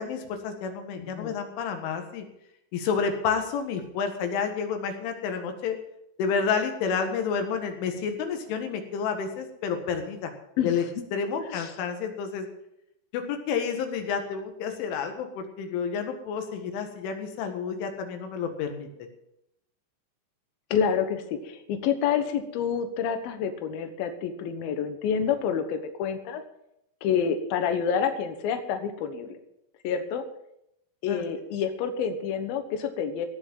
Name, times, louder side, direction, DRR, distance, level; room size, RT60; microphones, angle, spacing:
voice 1, 0.0-2.2 2.7-5.8 6.2-10.3 10.6-10.8 11.1-12.5 13.1-18.9 31.1-31.2, left 6 dB, 90° left, 6 dB, 4.2 m, -30 dB
voice 2, 1.0-1.3 10.6-10.7 11.4-11.7 20.7-26.4 27.0-29.4 29.8-30.2 31.0-33.3, left 7 dB, 65° left, 8 dB, 2.6 m, -28 dB
17.5 x 6.2 x 9.2 m, 0.80 s
omnidirectional pair, 5.4 m